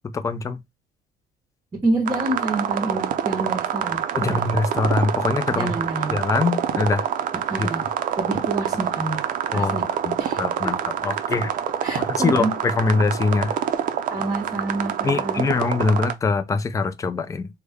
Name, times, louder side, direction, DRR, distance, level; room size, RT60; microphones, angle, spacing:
voice 1, 0.1-0.6 4.1-5.8 6.1-7.1 7.6-7.7 9.5-9.8 10.0-10.8 11.0-11.5 12.0-13.5 15.0-17.5, left 4 dB, 20° left, 0.4 m, -23 dB
voice 2, 1.8-4.4 5.5-6.2 7.5-7.8 8.2-9.2 9.5-9.8 10.2-10.7 11.8-12.5 14.1-15.5, right 2 dB, 25° right, 0.9 m, -27 dB
sound 1, 2.1-16.1, right 9 dB, 55° right, 0.5 m, -26 dB
3.3 x 2.1 x 3.4 m
cardioid pair, 110°, 17 cm